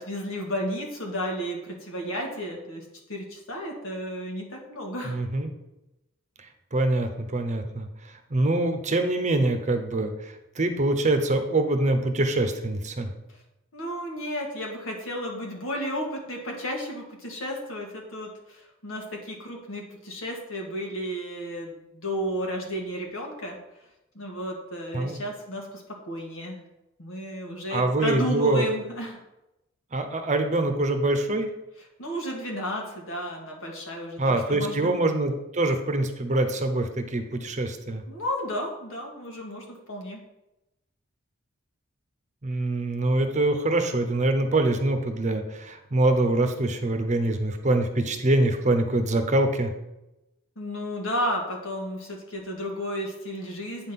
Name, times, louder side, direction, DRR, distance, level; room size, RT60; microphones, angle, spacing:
voice 1, 0.0-2.8 3.1-5.2 13.7-23.6 24.2-26.6 27.0-29.2 32.0-35.0 38.1-40.2 50.6-53.9, equal, 85° left, 1 dB, 1.7 m, -33 dB
voice 2, 5.0-5.5 6.7-7.9 8.3-13.1 24.9-25.2 27.7-28.7 29.9-31.5 34.2-38.0 42.4-49.7, right 2 dB, 35° right, 7 dB, 0.8 m, -24 dB
8.6 x 3.8 x 5.8 m, 0.94 s
head